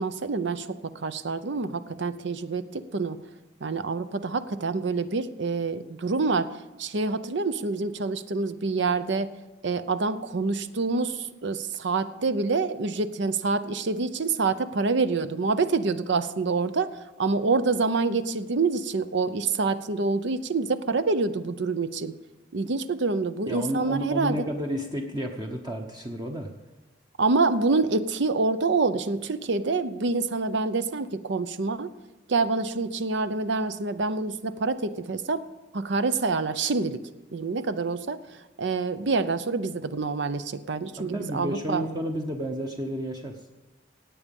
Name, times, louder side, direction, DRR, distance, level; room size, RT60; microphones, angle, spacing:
voice 1, 0.0-3.2 3.6-9.3 9.6-22.1 22.5-24.4 27.2-31.9 32.3-35.4 35.7-37.0 37.3-41.8, right 3 dB, 70° right, 13 dB, 0.7 m, -27 dB
voice 2, 23.5-26.5 41.0-43.4, equal, 20° right, 1 dB, 1.0 m, -31 dB
17.0 x 8.5 x 5.3 m, 1.1 s
head